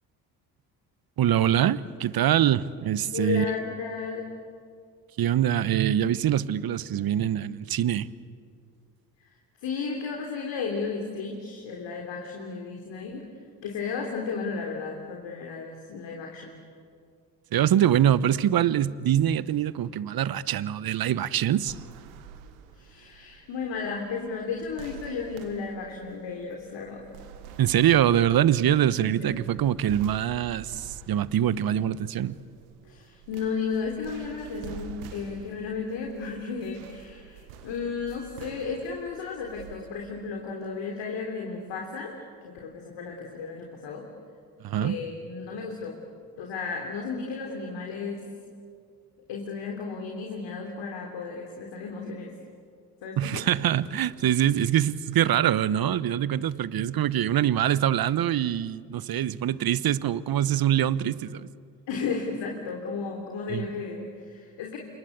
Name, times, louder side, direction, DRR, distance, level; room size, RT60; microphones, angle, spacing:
voice 1, 1.2-3.5 5.2-8.1 17.5-21.8 27.6-32.4 44.6-45.0 53.2-61.5 63.5-63.7, right 11 dB, 45° right, 1.0 m, -24 dB
voice 2, 3.1-4.4 9.6-13.3 13.6-16.6 22.7-27.0 29.0-29.6 32.8-42.2 42.4-44.1 44.8-46.0 46.4-48.3 49.3-52.3 53.0-53.6 61.9-64.8, left 5 dB, 65° left, 3.5 m, -34 dB
sound 1, 21.7-39.8, right 8 dB, 80° right, 1.6 m, -47 dB
28.5 x 24.0 x 8.3 m
hypercardioid pair, 50°, 48 cm